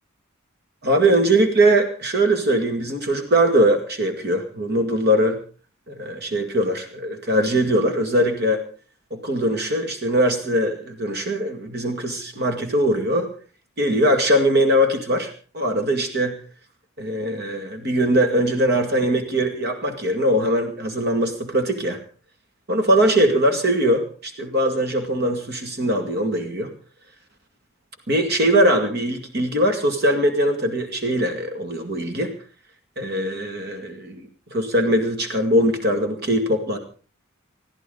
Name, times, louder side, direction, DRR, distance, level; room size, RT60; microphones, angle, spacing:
voice 1, 0.8-5.4 5.9-8.6 9.1-13.3 13.8-16.4 17.0-22.0 22.7-26.7 28.1-32.3 33.0-36.8, right 1 dB, 50° right, 5 dB, 2.1 m, -21 dB
22.0 x 14.0 x 3.9 m, 0.39 s
head